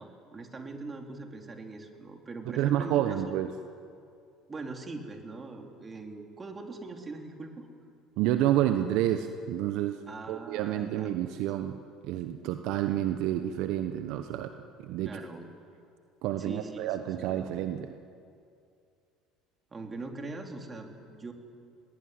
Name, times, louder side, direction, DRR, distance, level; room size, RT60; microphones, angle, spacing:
voice 1, 0.0-3.2 4.5-7.7 10.1-11.4 15.0-15.5 16.4-17.5 19.7-21.3, right 3 dB, 25° right, 3 dB, 4.0 m, -42 dB
voice 2, 2.5-3.5 8.2-10.0 10.3-11.8 12.0-14.5 14.8-15.2 16.2-17.9, right 12 dB, 65° right, 8 dB, 1.0 m, -29 dB
21.0 x 21.0 x 9.7 m, 2.4 s
hypercardioid pair, 80°, 0 cm